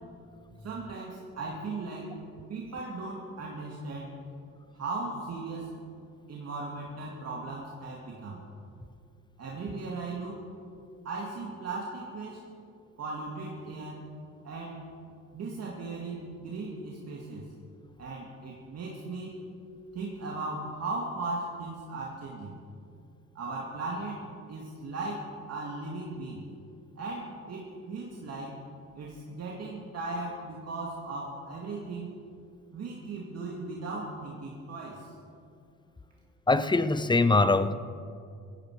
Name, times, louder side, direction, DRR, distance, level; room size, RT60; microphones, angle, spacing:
voice 1, 0.6-2.2 2.5-4.2 4.7-5.7 6.3-8.4 9.4-10.4 11.0-12.5 13.0-14.0 14.4-14.8 15.3-17.5 18.0-19.4 19.9-22.6 23.3-26.5 27.0-28.6 29.0-32.1 32.7-35.1, right 3 dB, 55° right, -3 dB, 2.4 m, -37 dB
voice 2, 36.5-37.7, left 3 dB, 15° left, 13 dB, 0.7 m, -23 dB
16.5 x 15.5 x 4.9 m, 2.3 s
cardioid pair, 90°, 30 cm